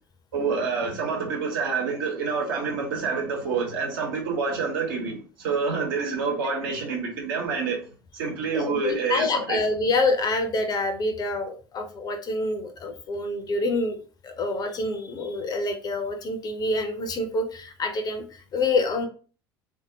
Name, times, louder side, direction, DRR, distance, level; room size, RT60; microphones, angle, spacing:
voice 1, 0.3-7.8 8.1-9.6, right 5 dB, 65° right, 1.1 m, -27 dB
voice 2, 8.5-14.0 14.2-19.1, left 2 dB, 30° left, 0.6 m, -27 dB
3.6 x 2.7 x 2.7 m
figure-of-eight pair, 65°, 12 cm